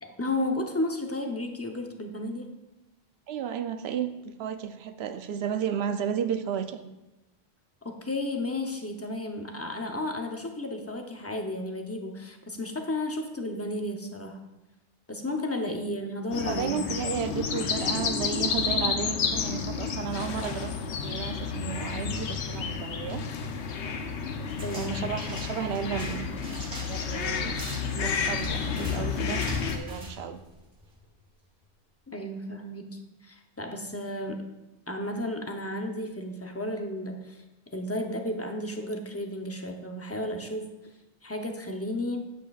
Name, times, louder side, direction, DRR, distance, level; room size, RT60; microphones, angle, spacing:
voice 1, 0.0-2.5 7.8-14.4 15.1-16.8 24.6-25.1 32.1-34.5 34.9-37.4 37.7-40.7 41.2-42.3, left 1 dB, 15° left, 3 dB, 0.5 m, -33 dB
voice 2, 3.3-6.8 16.4-20.7 21.0-23.2 24.7-27.6 27.9-29.4 29.7-30.4, right 8 dB, 70° right, 8 dB, 0.8 m, -33 dB
sound 1, 16.3-29.8, left 6 dB, 85° left, 1.0 m, -31 dB
sound 2, 24.5-31.0, equal, 55° right, 1.6 m, -42 dB
9.0 x 7.8 x 2.4 m, 0.99 s
omnidirectional pair, 1.1 m